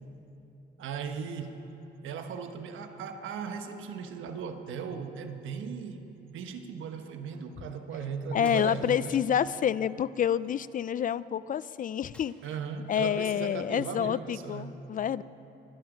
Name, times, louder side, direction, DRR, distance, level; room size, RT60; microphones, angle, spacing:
voice 1, 0.8-1.6 2.0-6.0 6.3-9.2 12.4-14.8, right 6 dB, 80° right, 7 dB, 1.3 m, -37 dB
voice 2, 8.3-12.3 12.9-15.2, left 9 dB, 45° left, 18 dB, 0.4 m, -28 dB
sound 1, 8.4-9.2 9.6-9.8 10.2-11.1 12.1-12.9, left 1 dB, 5° left, 2.2 m, -56 dB
24.0 x 12.0 x 5.1 m, 3.0 s
cardioid pair, 90°, 20 cm